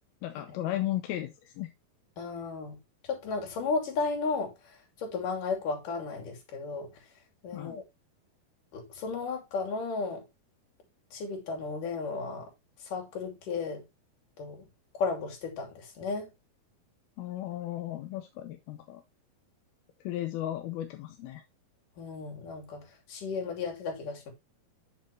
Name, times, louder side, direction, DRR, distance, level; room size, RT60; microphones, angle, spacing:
voice 1, 0.2-1.7 7.5-7.8 17.2-19.0 20.0-21.4, left 13 dB, 85° left, 2.7 m, -35 dB
voice 2, 2.2-2.8 3.1-4.5 5.0-6.9 7.4-7.8 8.7-10.2 11.1-12.5 12.8-13.8 14.4-14.7 14.9-16.3 22.0-24.3, left 4 dB, 60° left, 4.4 m, -34 dB
9.2 x 7.0 x 3.3 m
omnidirectional pair, 4.2 m